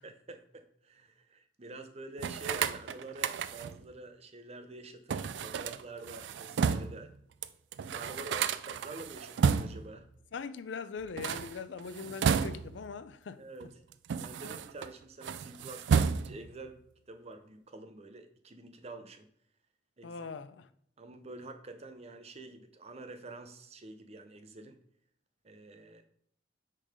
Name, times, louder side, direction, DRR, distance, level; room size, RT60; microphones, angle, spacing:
voice 1, 0.0-7.2 7.8-10.1 13.4-13.7 14.2-16.8 17.1-19.3 20.0-20.3 21.0-24.8 25.4-26.0, right 2 dB, 35° right, 0.7 m, -47 dB
sound 1, 2.2-3.8 5.1-7.0 7.4-7.5 7.7-9.9 11.0-12.9 13.6-14.9 15.2-16.5, right 6 dB, 70° right, 0.3 m, -32 dB
voice 2, 10.3-13.4 20.0-20.7, left 5 dB, 85° left, 0.4 m, -41 dB
6.5 x 3.8 x 5.0 m
head